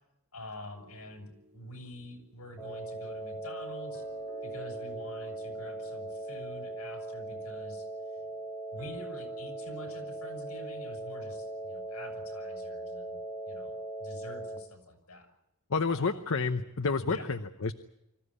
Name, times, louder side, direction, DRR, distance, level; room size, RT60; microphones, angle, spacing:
voice 1, 0.3-4.0 4.4-7.9 8.7-13.2 13.5-15.3 15.9-16.2 17.0-17.3, left 1 dB, 80° left, 5 dB, 6.5 m, -46 dB
sound 1, 0.7-12.3, right 1 dB, 65° right, 4.0 m, -58 dB
sound 2, 2.6-14.6, right 2 dB, 10° left, 4.1 m, -39 dB
voice 2, 15.7-17.7, left 4 dB, 65° left, 8 dB, 0.9 m, -30 dB
25.0 x 15.0 x 9.8 m, 0.87 s
head